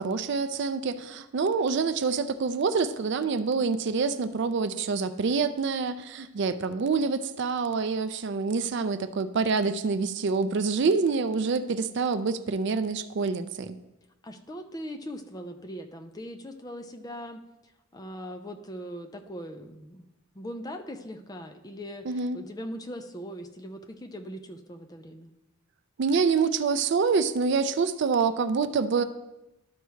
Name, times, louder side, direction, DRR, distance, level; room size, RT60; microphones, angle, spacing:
voice 1, 0.0-13.8 22.1-22.4 26.0-29.0, right 5 dB, 55° right, 11 dB, 0.4 m, -26 dB
voice 2, 14.2-20.1 20.3-25.3, equal, 20° left, 5 dB, 0.5 m, -40 dB
12.5 x 4.6 x 3.1 m, 0.95 s
head